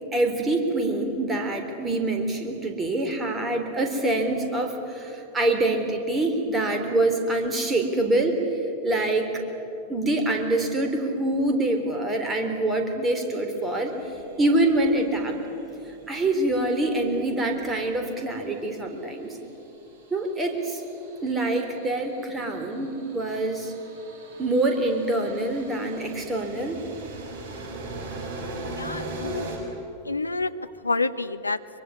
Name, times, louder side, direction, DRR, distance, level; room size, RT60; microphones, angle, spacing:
voice 1, 0.1-8.4 8.8-9.4 9.9-13.9 14.4-15.4 16.1-19.4 20.1-20.8 21.2-23.7 24.4-26.8, right 2 dB, 15° right, 4 dB, 3.8 m, -25 dB
sound 1, 13.5-17.9 19.4-29.6, right 2 dB, 40° right, 6.6 m, -41 dB
voice 2, 28.7-29.5 30.0-30.5 30.8-31.6, left 3 dB, 80° left, 11 dB, 0.8 m, -28 dB
23.5 x 23.5 x 9.7 m, 3.0 s
figure-of-eight pair, 90°, 0 cm